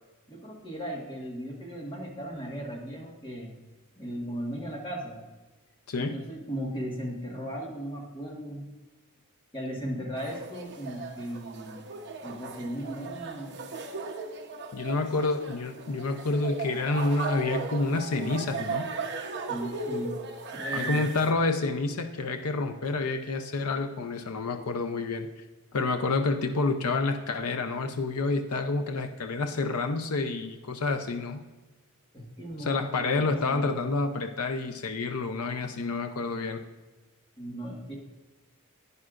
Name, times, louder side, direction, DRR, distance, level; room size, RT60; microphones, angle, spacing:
voice 1, 0.3-3.6 4.0-5.2 6.0-8.7 9.5-11.9 12.2-14.0 19.5-20.2 20.5-21.1 25.7-25.8 32.1-33.7 37.4-37.9, equal, 20° left, -1 dB, 1.7 m, -37 dB
voice 2, 5.9-6.2 14.7-18.9 20.7-25.3 25.7-31.4 32.6-36.6, left 3 dB, 80° left, 6 dB, 0.6 m, -28 dB
sound 1, 10.2-21.3, right 4 dB, 50° right, 0.9 m, -37 dB
11.0 x 9.7 x 2.5 m, 1.2 s
head